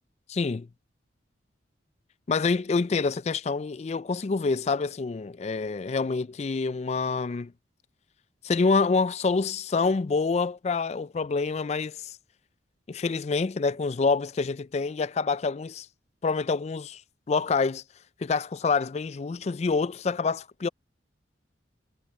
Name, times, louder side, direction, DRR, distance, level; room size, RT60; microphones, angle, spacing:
voice 1, 0.3-0.7 2.3-7.5 8.4-12.2 12.9-15.9 16.2-17.0 17.3-17.8 18.2-20.7, left 4 dB, 35° left, 0.3 m, -27 dB
head